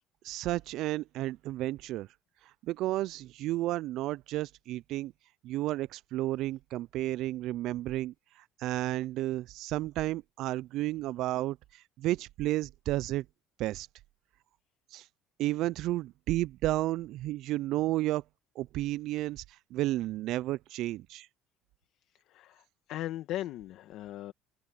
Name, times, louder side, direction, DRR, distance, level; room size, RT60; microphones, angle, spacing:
voice 1, 0.2-2.1 2.7-5.1 5.4-8.1 8.6-13.2 13.6-13.9 14.9-15.1 15.4-18.2 18.6-19.4 19.7-21.3, right 16 dB, 65° right, 0.3 m, -32 dB
voice 2, 22.3-24.3, left 14 dB, 65° left, 1.7 m, -38 dB
open air
supercardioid pair, 95°, 0 cm